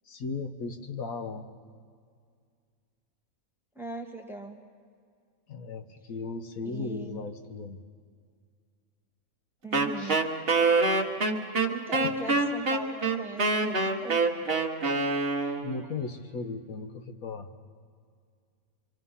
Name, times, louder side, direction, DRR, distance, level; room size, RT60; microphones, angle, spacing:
voice 1, 0.1-1.5 5.5-7.8 10.0-10.2 11.9-12.1 15.6-17.5, left 4 dB, 80° left, 7 dB, 1.5 m, -36 dB
voice 2, 3.7-4.6 6.6-7.2 9.6-10.2 11.7-14.2, right 2 dB, ahead, 4 dB, 1.3 m, -40 dB
Wind instrument woodwind instrument, 9.7-15.8, right 3 dB, 45° right, 1.5 m, -25 dB
25.5 x 25.0 x 5.6 m, 2.1 s
omnidirectional pair, 1.5 m